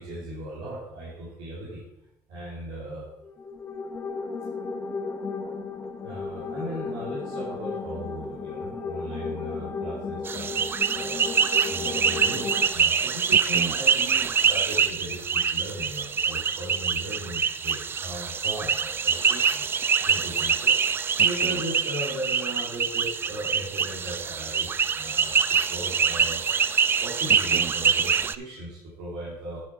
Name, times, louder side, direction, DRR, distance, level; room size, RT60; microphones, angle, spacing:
voice 1, 0.0-1.8 2.3-3.0 6.0-11.2 11.7-19.6 20.0-20.8 21.2-26.4 27.0-29.6, right 1 dB, 80° right, -5 dB, 2.8 m, -37 dB
sound 1, 3.2-12.7, left 4 dB, 30° left, 1.3 m, -34 dB
sound 2, 10.2-28.3, right 6 dB, 30° right, 0.4 m, -24 dB
9.9 x 7.2 x 4.4 m, 0.89 s
cardioid pair, 135°, 8 cm